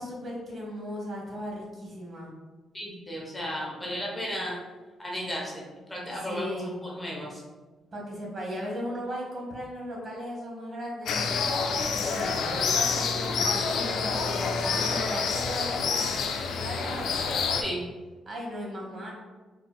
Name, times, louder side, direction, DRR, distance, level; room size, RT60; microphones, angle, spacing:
voice 1, 0.0-2.3 6.2-6.7 7.9-16.1 16.5-17.3 18.2-19.1, equal, 45° right, -3 dB, 1.1 m, -37 dB
voice 2, 2.7-4.6 5.0-5.6 5.9-7.4 16.8-17.0 17.6-17.8, equal, 15° left, -3 dB, 0.8 m, -34 dB
sound 1, 11.1-17.6, left 5 dB, 70° left, 0.3 m, -28 dB
3.9 x 2.3 x 2.2 m, 1.3 s
cardioid pair, 90°, 0 cm